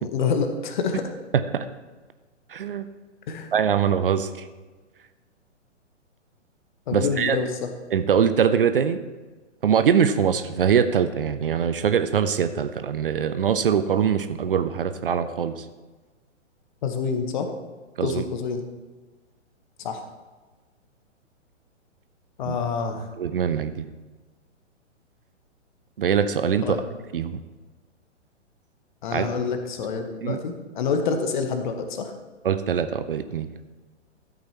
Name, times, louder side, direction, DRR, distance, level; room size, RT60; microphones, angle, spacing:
voice 1, 0.0-1.1 3.3-3.5 6.9-7.7 16.8-17.5 18.0-18.6 19.8-20.0 22.4-23.1 26.6-26.8 29.0-32.1, left 5 dB, 40° left, 6 dB, 1.2 m, -27 dB
voice 2, 1.3-1.7 2.5-2.9 3.5-4.3 6.9-7.4 7.9-9.0 9.6-15.6 18.0-18.2 22.5-22.6 23.2-23.9 26.0-26.8 27.1-27.4 29.1-29.3 30.2-30.4 32.4-33.5, right 7 dB, 45° right, 11 dB, 0.6 m, -23 dB
13.0 x 8.6 x 2.9 m, 1.3 s
figure-of-eight pair, 120°, 37 cm